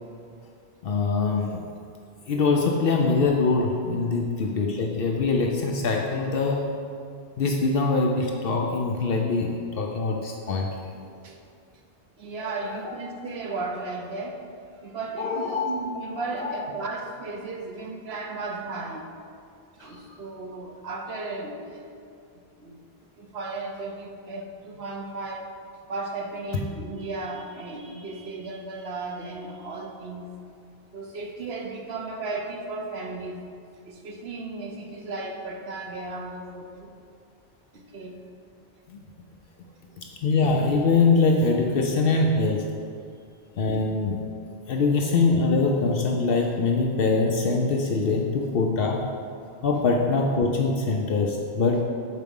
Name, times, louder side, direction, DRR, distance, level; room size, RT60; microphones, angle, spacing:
voice 1, 0.8-1.7 2.3-6.7 7.4-10.7 12.6-13.0 15.2-15.7 16.4-16.6 38.9-39.0 40.2-42.7 43.6-44.2 44.7-49.1 49.6-51.8, left 3 dB, 65° left, 1 dB, 0.8 m, -23 dB
voice 2, 11.0-11.4 12.2-14.5 14.8-19.1 19.7-22.0 22.6-22.8 23.2-25.5 25.9-30.3 30.9-33.4 33.8-36.9 37.7-38.2 39.7-40.0 43.0-43.2, right 3 dB, 80° right, 2 dB, 1.1 m, -35 dB
6.6 x 4.7 x 5.3 m, 2.4 s
omnidirectional pair, 1.0 m